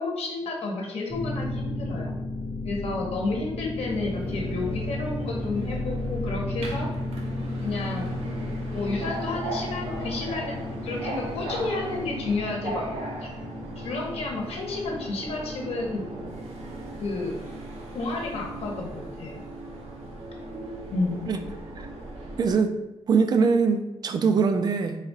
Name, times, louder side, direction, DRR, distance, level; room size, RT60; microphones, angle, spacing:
voice 1, 0.0-2.1 2.6-6.9 7.6-8.1 8.7-10.5 10.8-12.8 13.8-16.1 17.0-17.4 17.9-19.4 20.9-21.2, left 3 dB, 70° left, -1 dB, 1.0 m, -31 dB
sound 1, 1.1-20.6, left 2 dB, 20° left, 0.7 m, -35 dB
Subway metro underground, 3.8-22.5, right 2 dB, 75° right, 0.8 m, -38 dB
voice 2, 22.4-22.7 23.1-25.0, right 5 dB, 40° right, 7 dB, 0.4 m, -22 dB
4.0 x 2.4 x 4.0 m, 0.95 s
wide cardioid pair, 170°, 11 cm